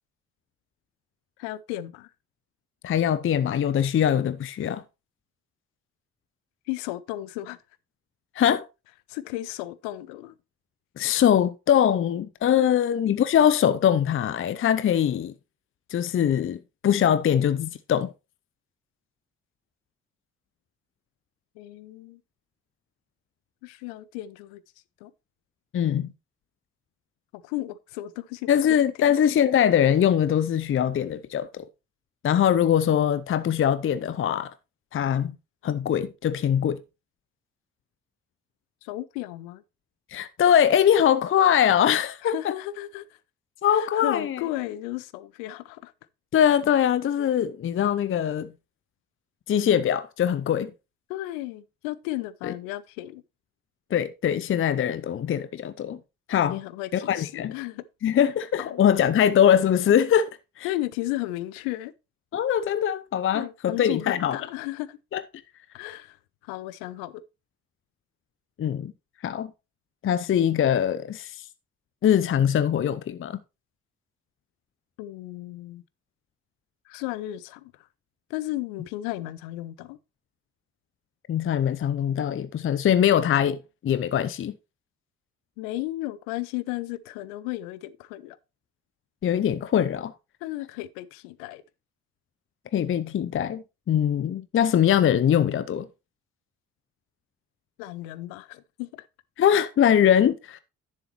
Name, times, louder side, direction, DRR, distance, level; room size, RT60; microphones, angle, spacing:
voice 1, 1.4-2.1 6.7-7.6 9.1-10.3 12.6-12.7 21.6-22.2 23.6-24.6 25.0-25.1 27.3-28.8 29.1-29.2 38.8-39.6 42.2-43.2 43.7-45.9 51.1-53.2 56.5-57.8 58.6-58.8 60.6-61.9 63.3-65.0 65.7-66.2 66.4-67.2 75.0-75.8 76.9-77.7 78.3-80.0 85.6-88.4 90.4-91.6 97.8-99.1, left 16 dB, 70° left, 0.6 m, -34 dB
voice 2, 2.8-4.8 8.4-8.7 11.0-15.3 15.9-18.1 25.7-26.1 28.5-31.7 32.2-34.5 34.9-35.4 35.6-36.8 40.1-42.5 43.6-44.4 46.3-48.5 49.5-50.7 52.4-52.5 53.9-56.0 56.3-56.6 57.1-57.5 58.0-60.7 62.3-64.4 65.1-65.2 68.6-68.9 69.2-69.5 70.0-71.4 72.0-73.4 81.3-84.5 89.2-90.1 92.7-95.9 99.4-100.6, left 9 dB, 35° left, 0.6 m, -22 dB
10.5 x 7.0 x 3.1 m
figure-of-eight pair, 40°, 36 cm